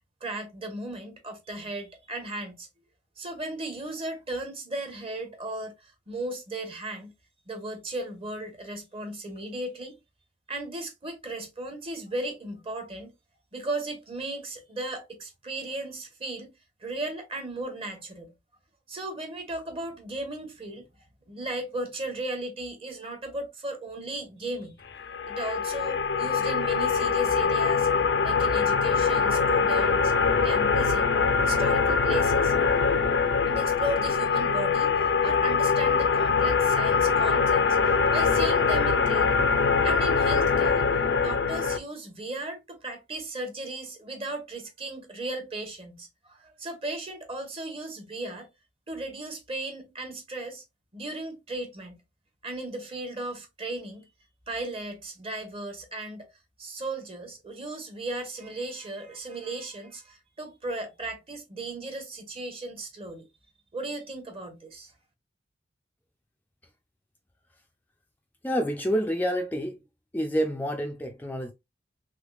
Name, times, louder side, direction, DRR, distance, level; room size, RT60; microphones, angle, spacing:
voice 1, 0.2-2.7 3.2-7.1 7.5-10.0 10.5-13.1 13.5-16.5 16.8-18.3 18.9-20.9 21.3-25.0 25.2-27.9 28.2-30.1 30.4-31.0 31.4-32.5 33.5-39.4 39.8-40.9 41.2-48.5 48.9-50.6 50.9-51.9 52.4-54.1 54.5-56.3 56.6-63.2 63.7-64.9, right 2 dB, 35° right, 1.0 m, -36 dB
sound 1, 25.0-41.8, left 5 dB, 80° left, 0.5 m, -23 dB
voice 2, 68.4-69.8 70.1-71.5, equal, 10° left, 0.4 m, -28 dB
3.5 x 3.2 x 2.3 m
head